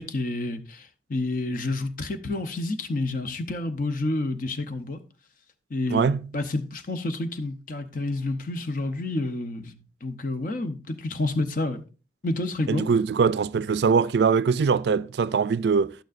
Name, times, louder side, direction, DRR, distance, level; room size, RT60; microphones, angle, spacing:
voice 1, 0.0-5.0 5.7-11.8 12.2-12.9, left 2 dB, 50° left, 0.8 m, -29 dB
voice 2, 5.9-6.3 12.7-15.9, right 5 dB, 65° right, 0.3 m, -22 dB
11.5 x 9.1 x 2.5 m
head